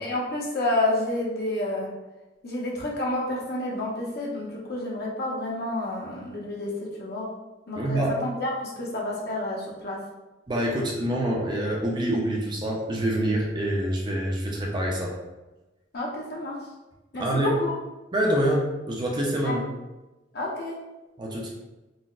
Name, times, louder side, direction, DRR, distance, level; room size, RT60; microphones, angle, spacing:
voice 1, 0.0-1.9 2.4-6.7 7.0-7.3 7.7-10.0 15.9-16.5 17.1-17.7 19.4-19.6 20.3-20.7, left 1 dB, 55° left, -3 dB, 0.7 m, -29 dB
voice 2, 7.8-8.1 10.5-15.2 17.1-17.6 18.1-19.6 21.2-21.5, right 1 dB, 25° right, -1 dB, 0.4 m, -26 dB
3.9 x 2.1 x 2.4 m, 1.1 s
head